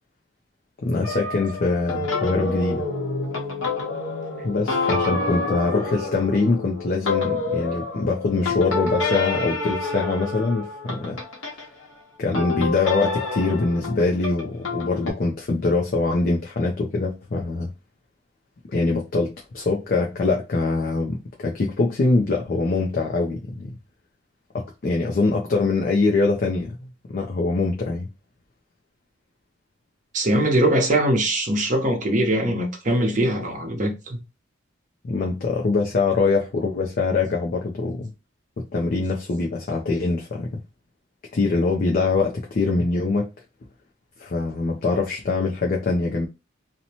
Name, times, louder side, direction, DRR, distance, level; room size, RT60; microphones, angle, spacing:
voice 1, 0.8-2.8 4.4-11.2 12.2-17.7 18.7-23.7 24.5-26.7 27.1-28.1 35.0-38.1 38.6-40.6 41.3-43.3 44.2-46.3, left 3 dB, 45° left, 0.4 m, -23 dB
sound 1, 1.0-11.7 12.3-15.1, left 3 dB, 80° left, 1.0 m, -28 dB
voice 2, 30.1-34.2, right 1 dB, 40° right, 0.8 m, -22 dB
2.7 x 2.1 x 2.8 m
head